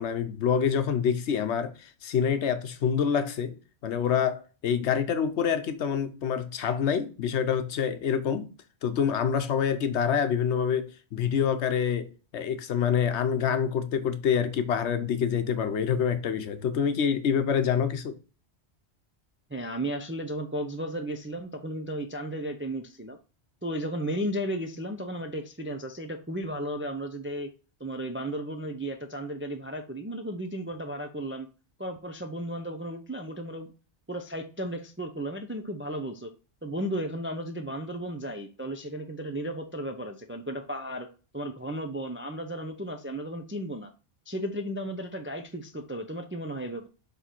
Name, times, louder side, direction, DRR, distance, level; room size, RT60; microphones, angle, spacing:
voice 1, 0.0-3.6 3.8-8.5 8.8-18.2, left 7 dB, 80° left, 1.1 m, -26 dB
voice 2, 19.5-23.2 23.6-27.5 27.8-31.5 31.8-33.7 34.1-36.3 36.6-43.9 44.3-46.9, right 1 dB, 15° right, 0.4 m, -34 dB
7.0 x 3.2 x 4.4 m
omnidirectional pair, 1.1 m